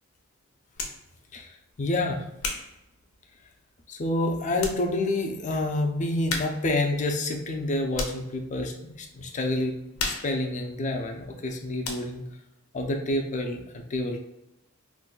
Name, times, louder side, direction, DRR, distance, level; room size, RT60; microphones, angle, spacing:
sound 1, 0.7-1.1 1.7-3.7 4.2-4.3 4.6-4.9 5.2-5.3 6.3-6.8 7.1-8.3 8.8-9.1 9.4-11.5 11.8-12.3, left 3 dB, 85° left, 0.6 m, -35 dB
voice 1, 1.8-2.3 3.9-9.7 10.0-12.2 12.7-14.2, left 2 dB, 35° left, 3 dB, 0.4 m, -28 dB
3.8 x 2.6 x 2.2 m, 0.87 s
head